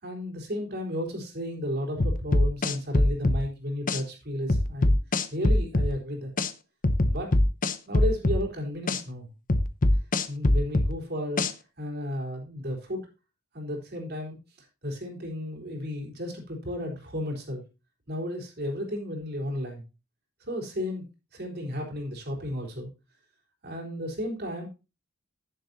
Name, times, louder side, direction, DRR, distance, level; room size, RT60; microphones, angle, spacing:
voice 1, 0.0-4.9 5.3-6.3 7.0-7.4 7.9-9.3 10.3-11.4 11.8-13.0 13.5-14.4 14.8-17.6 18.1-19.8 20.4-21.0 21.3-22.9 23.6-24.7, equal, 50° right, 1 dB, 3.9 m, -33 dB
sound 1, 2.0-3.4 3.9-4.0 4.5-5.9 6.4-6.5 6.8-8.4 8.9-9.0 9.5-10.9 11.4-11.5, left 1 dB, 40° left, 0.9 m, -22 dB
10.5 x 10.0 x 2.7 m, 0.29 s
head